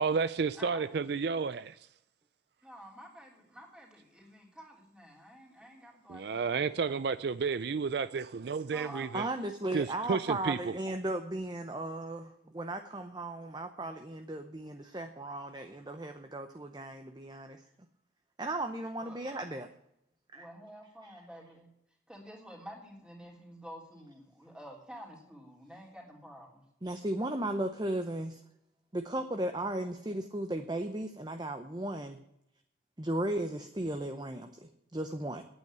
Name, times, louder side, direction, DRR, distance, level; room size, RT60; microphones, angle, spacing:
voice 1, 0.0-1.8 6.1-9.3 9.7-10.7, right 5 dB, 60° right, 0.4 m, -31 dB
voice 2, 2.6-7.0 8.7-9.4 19.0-19.2 20.4-21.7 22.1-26.6, equal, 5° right, 3.3 m, -50 dB
voice 3, 9.1-17.6 18.4-19.7 20.3-20.5 21.0-21.2 26.8-28.4 28.9-32.2 33.0-35.4, right 1 dB, 20° right, 0.7 m, -36 dB
9.3 x 8.8 x 9.0 m
head